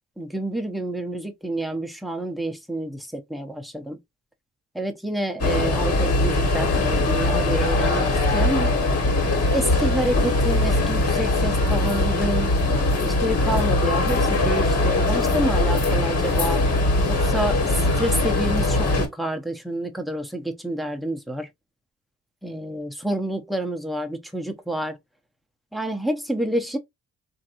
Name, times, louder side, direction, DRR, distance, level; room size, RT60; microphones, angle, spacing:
voice 1, 0.2-4.0 4.7-8.1 8.3-8.7 9.5-12.5 13.0-16.6 17.1-17.6 18.0-21.5 22.4-24.9 25.7-26.8, right 1 dB, ahead, 0.7 m, -28 dB
sound 1, 5.4-19.1, left 2 dB, 55° left, 1.5 m, -21 dB
3.1 x 2.6 x 2.8 m
cardioid pair, 90°, 30 cm